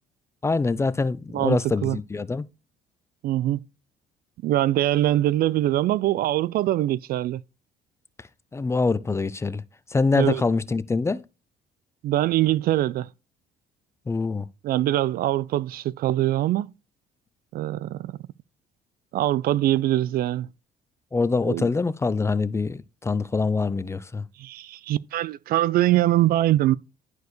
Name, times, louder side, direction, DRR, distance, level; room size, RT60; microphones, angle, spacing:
voice 1, 0.4-2.4 8.5-9.6 9.9-11.2 14.1-14.5 21.1-24.2, left 3 dB, 15° left, 0.4 m, -24 dB
voice 2, 1.3-2.0 3.2-3.6 4.4-7.4 10.1-10.4 12.0-13.1 14.6-16.7 17.5-18.1 19.1-20.5 21.5-21.7 24.4-26.7, right 14 dB, 60° right, 0.4 m, -23 dB
11.5 x 4.7 x 3.1 m
cardioid pair, 110°, 17 cm